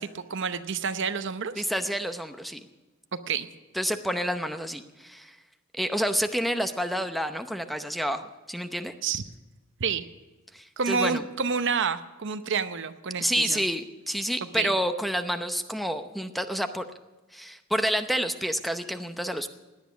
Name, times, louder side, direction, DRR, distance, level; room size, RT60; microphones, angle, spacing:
voice 1, 0.0-1.6 3.1-3.5 9.0-9.2 9.8-10.1 10.8-13.6 14.5-14.7, right 5 dB, 60° right, 11 dB, 0.8 m, -29 dB
voice 2, 1.6-2.6 3.7-5.3 5.7-8.9 10.5-11.2 13.2-16.9 17.3-19.5, equal, ahead, 8 dB, 0.7 m, -29 dB
17.5 x 10.5 x 6.2 m, 1.2 s
head